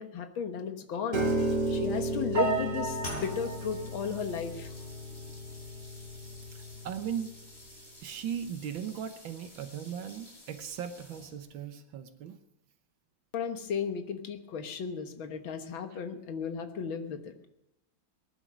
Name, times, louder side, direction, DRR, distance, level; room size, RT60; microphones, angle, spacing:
voice 1, 0.0-4.7 13.3-17.3, left 7 dB, 85° left, 7 dB, 2.1 m, -35 dB
Piano, 1.1-7.3, right 2 dB, 60° right, 3.1 m, -33 dB
sound 1, 3.0-11.6, left 1 dB, 30° left, 5.6 m, -49 dB
voice 2, 6.5-7.3 8.0-12.4 15.9-16.0, right 8 dB, 80° right, 8 dB, 1.7 m, -38 dB
19.0 x 11.0 x 6.1 m, 0.87 s
omnidirectional pair, 2.1 m